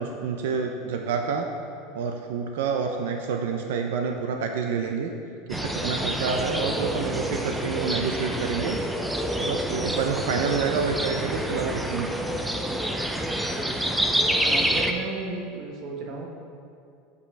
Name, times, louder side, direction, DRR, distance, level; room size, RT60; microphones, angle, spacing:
voice 1, 0.0-1.5 1.9-5.1 5.5-8.8 9.4-12.4, right 6 dB, 85° right, 4 dB, 0.5 m, -28 dB
sound 1, 5.5-14.9, equal, 5° right, 0.3 m, -27 dB
voice 2, 14.4-16.3, right 3 dB, 40° right, 0 dB, 1.0 m, -34 dB
7.8 x 5.3 x 3.3 m, 2.4 s
supercardioid pair, 155°, 0 cm